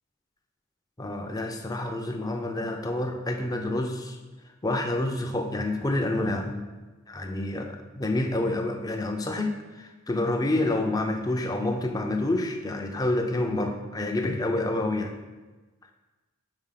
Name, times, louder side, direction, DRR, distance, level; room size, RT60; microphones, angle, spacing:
voice 1, 1.0-4.2 4.6-6.6 7.1-15.1, left 2 dB, 15° left, 4 dB, 0.5 m, -28 dB
4.9 x 4.1 x 5.7 m, 1.2 s
head